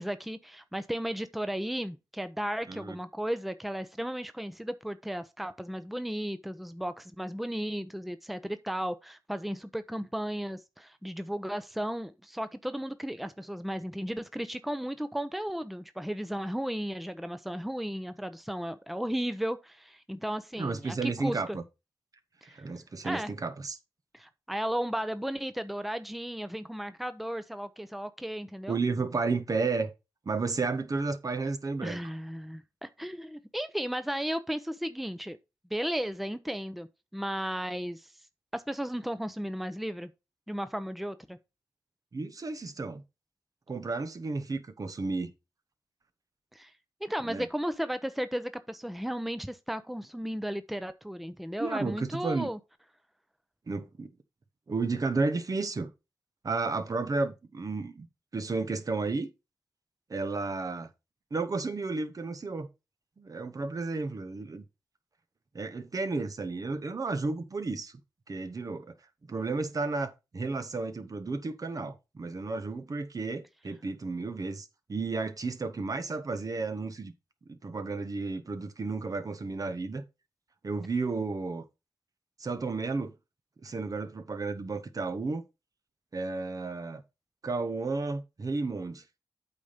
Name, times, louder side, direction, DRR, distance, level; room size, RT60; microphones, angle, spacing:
voice 1, 0.0-21.6 22.4-22.6 23.0-23.3 24.1-28.8 31.8-35.4 35.7-38.1 38.5-40.1 40.5-41.4 46.5-46.7 47.0-52.6, equal, ahead, 0.7 m, -35 dB
voice 2, 20.6-21.6 22.5-23.8 28.7-29.9 30.3-32.0 42.1-43.0 43.7-45.3 47.2-47.5 51.6-52.5 53.7-54.1 54.7-55.9 56.4-58.1 58.3-59.3 60.1-60.9 61.3-62.7 63.2-64.6 65.5-67.9 68.3-68.9 69.3-77.1 77.5-80.0 80.6-81.6 82.4-83.1 83.6-85.4 86.1-87.0 87.4-89.0, right 3 dB, 50° right, 1.0 m, -32 dB
8.3 x 4.2 x 5.1 m
cardioid pair, 60°, 8 cm